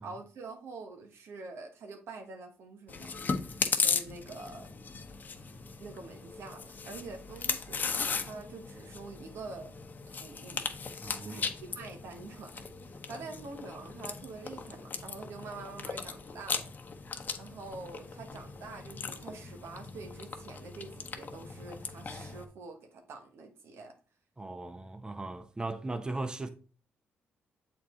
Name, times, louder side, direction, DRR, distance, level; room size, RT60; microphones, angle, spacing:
voice 1, 0.0-4.7 5.8-9.7 10.1-10.7 11.2-16.6 17.4-23.9, right 3 dB, 75° right, 1.3 m, -46 dB
Chewing mastication, 2.9-22.4, left 5 dB, 45° left, 0.9 m, -37 dB
voice 2, 11.0-11.5 24.4-26.5, right 2 dB, 20° right, 0.7 m, -38 dB
7.2 x 4.4 x 3.8 m
cardioid pair, 80°, 4 cm